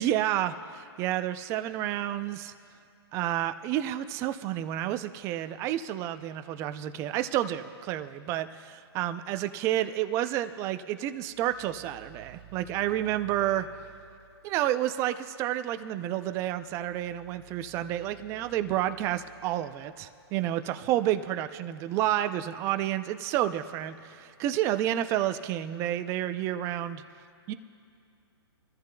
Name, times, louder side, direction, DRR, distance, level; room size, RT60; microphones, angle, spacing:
voice 1, 0.0-2.5 3.1-13.7 14.4-27.0 27.5-27.6, right 12 dB, 20° right, 10 dB, 0.5 m, -30 dB
sound 1, 11.2-14.9 16.2-20.6, right 11 dB, 65° right, 0.9 m, -55 dB
24.5 x 14.0 x 2.3 m, 2.4 s
hypercardioid pair, 145°, 14 cm